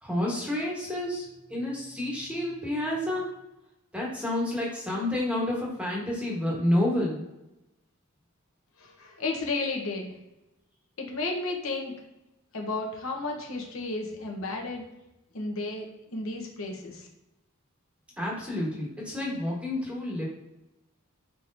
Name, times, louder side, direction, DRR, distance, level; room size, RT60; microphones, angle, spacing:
voice 1, 0.0-3.3 3.9-7.2 18.2-20.3, left 1 dB, 5° right, -4 dB, 1.2 m, -29 dB
voice 2, 8.8-10.1 11.0-11.9 12.5-14.9 15.3-17.1, left 3 dB, 65° left, 1 dB, 1.0 m, -33 dB
4.5 x 3.8 x 2.6 m, 0.94 s
head